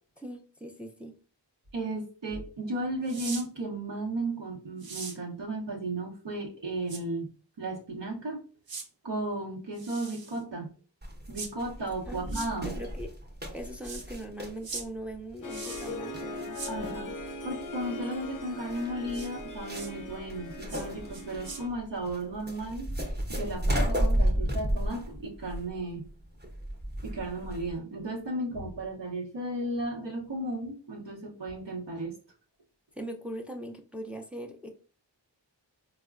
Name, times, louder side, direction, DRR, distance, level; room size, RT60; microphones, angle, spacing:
voice 1, 0.2-1.1 12.1-13.1 13.5-16.6 32.9-34.7, right 1 dB, 5° right, 3 dB, 0.4 m, -40 dB
voice 2, 1.7-7.3 7.6-8.5 9.0-10.7 11.3-12.8 16.7-26.1 27.0-32.1, right 2 dB, 75° right, -3 dB, 0.9 m, -35 dB
sound 1, 3.1-3.4 4.8-5.2 6.9-7.0 8.7-8.9 9.7-10.4 11.3-11.5 12.3-12.5 13.8-14.0 14.6-14.8 15.5-16.0 16.5-16.7 19.1-19.3 19.7-19.9 20.7-20.9 21.1-21.6, right 4 dB, 55° right, 0.7 m, -40 dB
sound 2, 11.0-27.8, equal, 25° right, 0.8 m, -33 dB
Harp, 15.4-21.7, left 2 dB, 45° left, 0.5 m, -40 dB
4.1 x 2.1 x 2.3 m, 0.38 s
wide cardioid pair, 45°, 44 cm